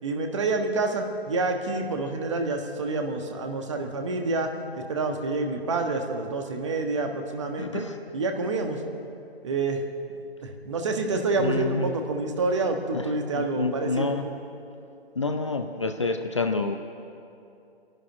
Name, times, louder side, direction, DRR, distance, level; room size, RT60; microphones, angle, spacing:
voice 1, 0.0-7.9 8.1-8.8 9.4-9.8 10.4-14.1, right 3 dB, 30° right, 4 dB, 1.4 m, -28 dB
voice 2, 7.6-7.9 11.4-11.9 12.9-14.3 15.2-16.8, left 3 dB, 30° left, 6 dB, 0.6 m, -28 dB
25.0 x 11.5 x 9.1 m, 2.6 s
figure-of-eight pair, 145°, 32 cm